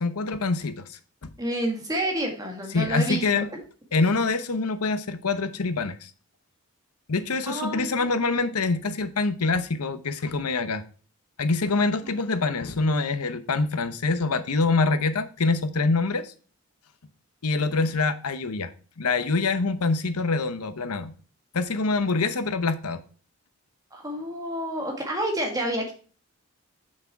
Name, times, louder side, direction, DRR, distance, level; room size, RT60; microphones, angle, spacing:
voice 1, 0.0-1.3 2.7-3.5 3.9-6.1 7.1-10.8 11.4-16.3 17.4-18.7 19.0-21.1 21.5-23.0, left 3 dB, 85° left, 11 dB, 0.9 m, -25 dB
voice 2, 1.4-3.6 7.5-8.0 12.0-12.1 17.7-17.8 23.9-25.9, right 1 dB, 15° right, 1 dB, 1.8 m, -29 dB
6.6 x 6.0 x 4.6 m, 0.39 s
head